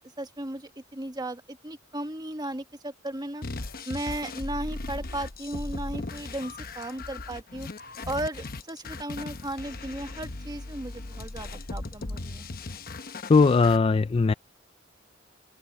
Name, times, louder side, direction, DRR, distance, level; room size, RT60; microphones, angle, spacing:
voice 1, 0.0-3.4 3.8-7.7 8.1-12.5, right 1 dB, 20° right, 1.5 m, -35 dB
sound 1, 3.4-13.8, left 2 dB, 50° left, 1.0 m, -38 dB
voice 2, 13.3-14.3, left 4 dB, 30° left, 0.3 m, -19 dB
head